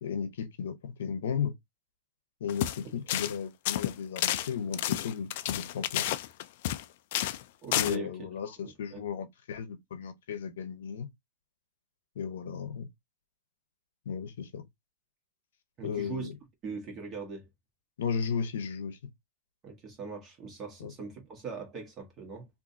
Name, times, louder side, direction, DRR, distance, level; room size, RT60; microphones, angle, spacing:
voice 1, 0.0-1.5 2.4-6.1 7.7-11.1 12.2-12.9 14.1-14.6 15.8-16.3 18.0-19.0 20.8-20.9, left 7 dB, 90° left, 0.8 m, -35 dB
sound 1, 2.5-2.8 3.1-3.4 3.7-6.8 7.1-7.4 7.7-8.0, left 14 dB, 60° left, 0.3 m, -30 dB
voice 2, 7.6-8.2 8.4-9.1 15.8-16.3 16.6-17.5 19.6-22.5, right 4 dB, 25° right, 1.5 m, -41 dB
3.7 x 2.6 x 2.7 m
supercardioid pair, 145°, 0 cm